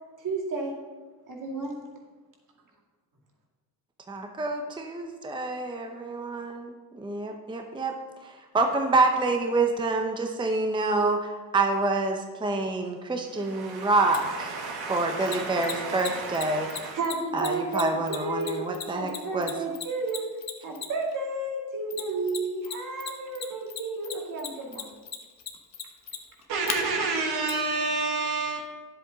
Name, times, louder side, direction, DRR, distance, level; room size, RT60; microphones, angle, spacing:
voice 1, 0.2-0.7 1.3-1.8 16.9-18.7 18.9-24.9, right 2 dB, 55° right, -1 dB, 2.3 m, -32 dB
voice 2, 4.1-7.9 8.2-14.5 14.9-16.7 17.3-19.5, right 3 dB, 10° right, 4 dB, 0.7 m, -27 dB
voice 3, 13.4-17.0 26.5-28.6, right 3 dB, 80° right, 0 dB, 1.8 m, -30 dB
Mechanisms, 14.1-14.2 15.3-21.1 21.9-22.7 23.0-26.8 27.5-27.6, left 8 dB, 45° left, 1.0 m, -35 dB
10.5 x 7.7 x 4.0 m, 1.3 s
cardioid pair, 125°, 38 cm